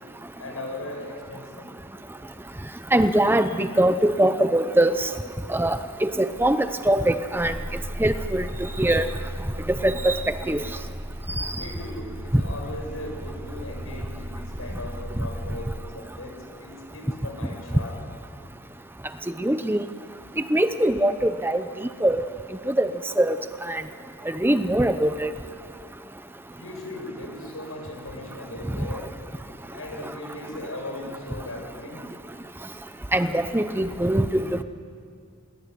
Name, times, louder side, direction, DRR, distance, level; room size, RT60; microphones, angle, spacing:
voice 1, 0.4-1.7 11.5-17.9 26.6-29.1 29.7-32.0, left 1 dB, 80° left, 2 dB, 6.9 m, -38 dB
voice 2, 2.9-5.1 5.5-7.6 8.0-9.1 9.8-10.6 11.4-11.5 12.3-12.4 19.4-19.8 20.5-22.2 22.7-22.9 23.2-23.4 23.7-23.8 24.3-25.3 33.1-34.6, right 1 dB, 10° right, 10 dB, 0.7 m, -22 dB
sound 1, 7.3-15.8, equal, 60° right, 2.6 m, -36 dB
28.0 x 22.0 x 9.4 m, 2.3 s
head